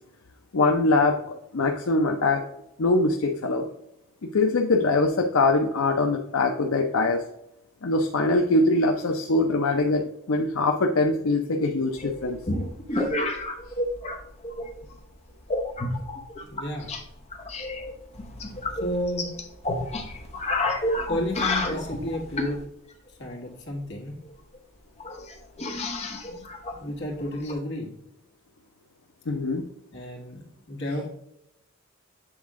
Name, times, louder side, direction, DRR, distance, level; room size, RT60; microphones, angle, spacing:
voice 1, 0.5-2.4 2.8-3.7 4.3-7.2 7.8-10.0 10.3-12.4 29.3-29.7, left 2 dB, 75° left, 2 dB, 0.6 m, -23 dB
sound 1, 12.0-14.2 14.4-14.9 15.5-17.0 17.3-22.6 24.3-24.4 24.5-24.6 25.0-27.5, left 2 dB, 30° left, 0.8 m, -30 dB
voice 2, 16.5-16.9 18.7-19.3 21.1-22.6 23.2-24.2 26.3-26.5 26.7-27.9 29.9-31.1, left 1 dB, 55° left, -1 dB, 1.8 m, -32 dB
8.0 x 3.6 x 3.6 m, 0.82 s
head